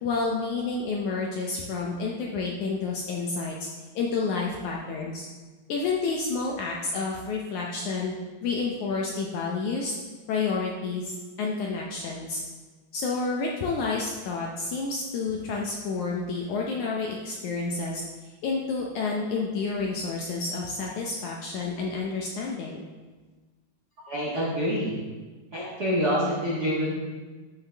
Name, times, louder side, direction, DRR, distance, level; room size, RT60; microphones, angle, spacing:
voice 1, 0.0-3.7 4.0-5.3 5.7-8.1 8.4-9.9 10.3-12.4 12.9-18.0 18.4-22.9, left 4 dB, 75° left, -1 dB, 1.8 m, -29 dB
voice 2, 24.1-25.0 25.5-26.9, equal, 75° right, -6 dB, 0.9 m, -26 dB
11.5 x 7.7 x 3.4 m, 1.3 s
omnidirectional pair, 4.3 m